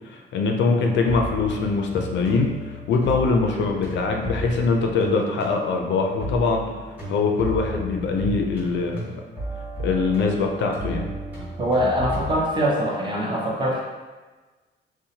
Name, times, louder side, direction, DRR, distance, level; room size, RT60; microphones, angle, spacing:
voice 1, 0.1-6.7 7.1-9.2 9.8-11.1, left 4 dB, 65° left, 2 dB, 0.4 m, -23 dB
sound 1, 0.7-12.4, equal, 5° right, 1.2 m, -34 dB
voice 2, 11.6-13.8, equal, 25° right, -3 dB, 0.6 m, -23 dB
2.7 x 2.1 x 2.7 m, 1.3 s
cardioid pair, 90°, 20 cm